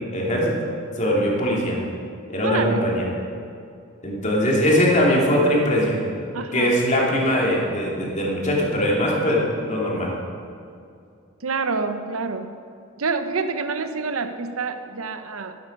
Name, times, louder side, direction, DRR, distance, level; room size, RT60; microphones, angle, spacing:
voice 1, 0.1-0.6 1.0-1.8 2.3-3.0 4.0-6.0 6.5-10.1, equal, 35° left, -3 dB, 2.6 m, -21 dB
voice 2, 2.4-2.8 6.3-6.7 11.4-12.5 13.0-15.6, right 4 dB, 85° right, 9 dB, 0.8 m, -27 dB
13.0 x 11.0 x 5.3 m, 2.4 s
head